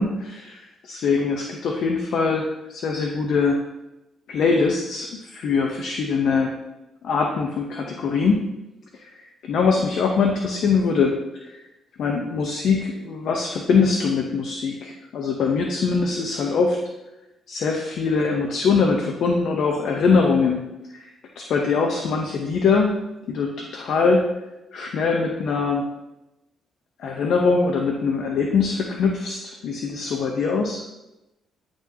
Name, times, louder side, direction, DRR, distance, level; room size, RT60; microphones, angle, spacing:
voice 1, 0.0-3.6 4.3-6.6 7.0-8.5 8.9-11.2 11.5-11.6 12.0-16.8 17.5-20.6 20.9-21.1 21.4-23.0 23.3-24.3 24.7-25.8 27.0-30.8, left 4 dB, 70° left, 2 dB, 0.8 m, -22 dB
9.9 x 6.1 x 2.8 m, 0.96 s
cardioid pair, 90°, 0 cm